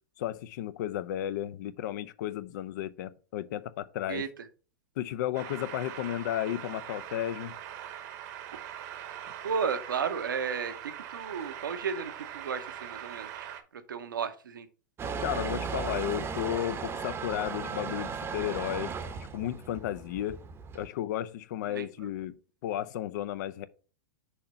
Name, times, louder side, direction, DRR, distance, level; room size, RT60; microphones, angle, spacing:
voice 1, 0.2-4.2 5.0-7.6 15.2-20.4 20.7-22.4 22.6-23.7, left 12 dB, 60° left, 0.5 m, -33 dB
sound 1, 5.3-13.6, right 11 dB, 55° right, 0.9 m, -42 dB
voice 2, 9.4-10.7 11.1-13.3 13.9-14.7 21.7-21.9, right 6 dB, 85° right, 0.8 m, -33 dB
Motor vehicle (road) / Engine starting / Accelerating revving vroom, 15.0-20.9, right 6 dB, 20° right, 0.7 m, -36 dB
6.5 x 2.8 x 5.4 m
hypercardioid pair, 105°, 11 cm